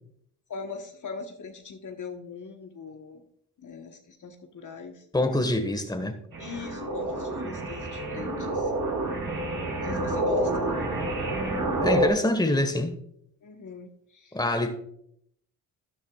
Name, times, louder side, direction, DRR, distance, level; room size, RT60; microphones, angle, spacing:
voice 1, 0.5-3.2 3.6-5.0 6.4-8.7 9.8-10.8 13.4-14.4, left 4 dB, 45° left, 1.3 m, -41 dB
voice 2, 5.1-6.1 11.8-13.0 14.3-14.7, left 1 dB, 10° left, 1.5 m, -25 dB
sound 1, 6.3-12.1, right 1 dB, 55° right, 3.3 m, -28 dB
13.0 x 10.0 x 2.4 m
supercardioid pair, 50°, 41 cm